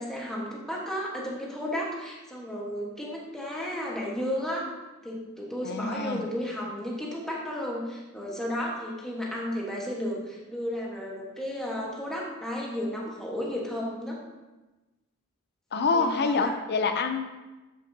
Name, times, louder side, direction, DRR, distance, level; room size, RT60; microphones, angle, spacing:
voice 1, 0.0-4.7 5.0-14.2 15.9-16.5, equal, 5° left, -3 dB, 1.3 m, -33 dB
voice 2, 5.6-6.2 15.7-17.3, left 4 dB, 55° left, 7 dB, 0.6 m, -26 dB
7.6 x 6.4 x 2.7 m, 1.1 s
head